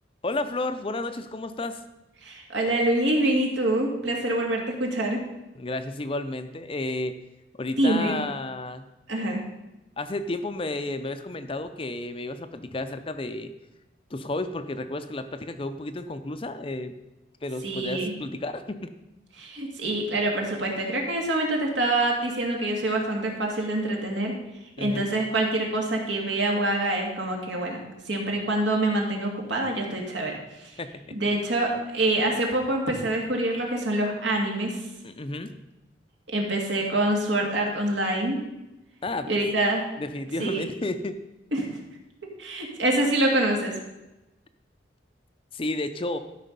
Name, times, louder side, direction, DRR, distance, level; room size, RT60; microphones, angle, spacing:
voice 1, 0.2-1.8 5.6-7.1 7.6-8.8 10.0-13.5 14.1-16.9 17.4-18.8 24.8-25.1 30.8-31.2 35.0-35.5 39.0-39.3 40.0-41.2 45.5-46.2, left 2 dB, 30° left, 9 dB, 0.5 m, -32 dB
voice 2, 2.2-5.2 7.8-8.2 9.1-9.4 17.6-18.1 19.4-24.3 24.8-27.8 28.1-30.8 31.1-34.8 36.3-38.4 39.3-39.8 40.4-40.7 41.5-41.7 42.4-43.7, right 1 dB, 75° right, 0 dB, 2.1 m, -25 dB
12.5 x 5.5 x 5.3 m, 0.99 s
head